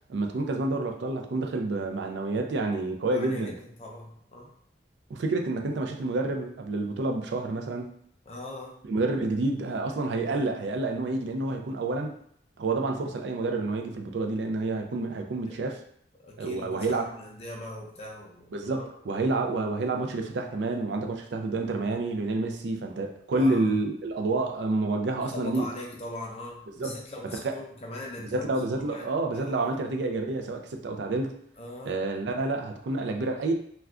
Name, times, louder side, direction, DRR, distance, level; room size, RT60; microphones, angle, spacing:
voice 1, 0.1-3.5 5.1-7.9 8.9-12.1 12.6-15.8 16.4-17.1 18.5-25.6 26.8-27.0 27.3-27.6 28.3-31.4 31.9-33.5, right 2 dB, 70° right, 3 dB, 0.4 m, -29 dB
voice 2, 3.1-4.5 8.3-8.8 15.5-15.6 16.2-18.8 23.3-23.7 25.2-29.1 29.3-29.8 31.6-32.0, left 1 dB, 35° left, -1 dB, 0.4 m, -41 dB
2.3 x 2.2 x 3.5 m, 0.65 s
head